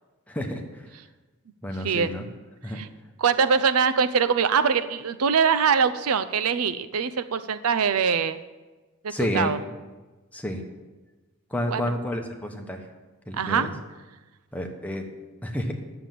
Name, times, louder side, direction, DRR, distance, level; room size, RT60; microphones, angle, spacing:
voice 1, 0.3-0.9 1.6-2.3 2.6-2.8 9.1-9.5 10.3-10.6 11.5-12.8 13.3-13.7 14.5-15.0 15.4-15.7, left 1 dB, 5° left, 2 dB, 1.1 m, -30 dB
voice 2, 3.2-8.4 9.0-9.6 11.7-11.8 13.4-13.7, right 6 dB, 85° right, 12 dB, 0.5 m, -23 dB
9.9 x 6.8 x 7.6 m, 1.2 s
head